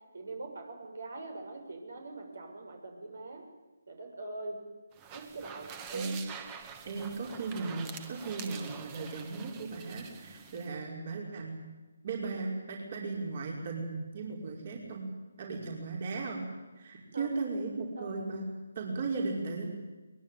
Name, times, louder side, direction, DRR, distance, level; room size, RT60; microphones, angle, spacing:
voice 1, 0.1-3.4 3.9-4.6 5.1-6.1 17.1-17.3 17.9-18.1, right 2 dB, 70° right, 3 dB, 6.7 m, -42 dB
sound 1, 4.9-10.7, right 7 dB, 20° right, 2.0 m, -46 dB
voice 2, 6.8-11.6 12.0-15.1 15.4-16.5 16.8-18.5 18.8-19.6, right 3 dB, 45° right, -1 dB, 5.6 m, -36 dB
23.0 x 21.5 x 9.4 m, 1.2 s
figure-of-eight pair, 155°, 0 cm